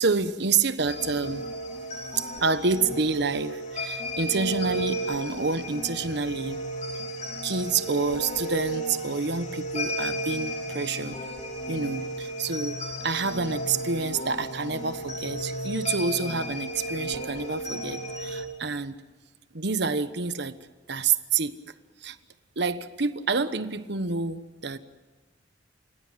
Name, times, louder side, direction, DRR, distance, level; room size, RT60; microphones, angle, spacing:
voice 1, 0.0-1.4 2.2-6.6 7.4-11.2 11.7-19.0 19.5-20.5 20.9-21.6 22.0-22.2 22.6-24.8, right 4 dB, 65° right, 12 dB, 1.2 m, -28 dB
sound 1, 0.9-18.4, right 1 dB, 40° left, 3.4 m, -34 dB
29.5 x 17.0 x 7.6 m, 1.2 s
head